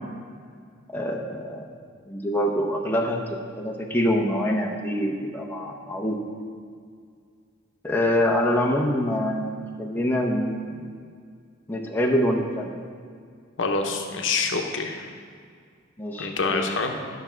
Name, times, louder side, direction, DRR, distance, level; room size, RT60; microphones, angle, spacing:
voice 1, 0.9-1.6 2.1-6.2 7.8-10.8 11.7-12.7 16.0-17.0, equal, 10° left, 0 dB, 0.8 m, -25 dB
voice 2, 13.6-15.1 16.2-16.9, left 4 dB, 70° left, 4 dB, 0.8 m, -26 dB
11.5 x 5.9 x 4.4 m, 2.1 s
head